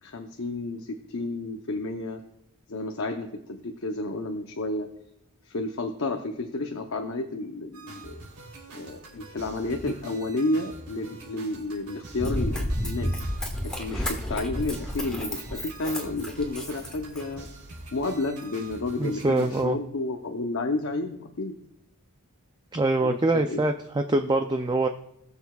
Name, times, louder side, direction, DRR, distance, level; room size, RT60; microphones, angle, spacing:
voice 1, 0.0-2.2 2.7-4.9 5.5-8.2 8.7-13.2 13.6-17.5 17.9-21.6 23.0-23.6, left 2 dB, 60° left, 3 dB, 0.7 m, -31 dB
sound 1, 7.7-19.7, right 3 dB, 75° right, 3.1 m, -45 dB
Run, 12.2-17.5 18.0-18.1, equal, 5° left, 1.4 m, -31 dB
voice 2, 19.0-19.8 22.7-24.9, right 2 dB, 20° right, 6 dB, 0.4 m, -24 dB
19.5 x 6.9 x 2.3 m, 0.84 s
head